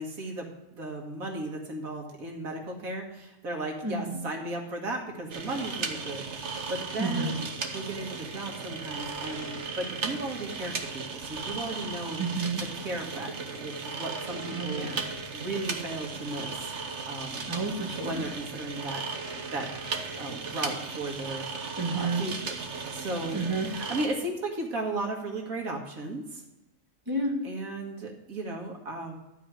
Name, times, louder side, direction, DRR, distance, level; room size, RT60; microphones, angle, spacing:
voice 1, 0.0-7.3 7.7-12.2 12.7-14.9 15.3-16.7 17.1-17.5 18.0-19.0 19.5-19.7 20.1-21.7 21.9-22.5 22.9-26.4 27.4-29.2, right 2 dB, 85° right, 0 dB, 2.1 m, -35 dB
voice 2, 3.8-4.3 7.0-7.3 12.2-12.6 14.5-15.0 17.5-18.3 21.8-22.3 23.3-23.7 27.1-27.4, right 2 dB, 15° right, -1 dB, 1.8 m, -30 dB
sound 1, 5.3-24.1, right 4 dB, 60° right, 1.3 m, -36 dB
12.5 x 4.8 x 7.7 m, 0.99 s
omnidirectional pair, 1.4 m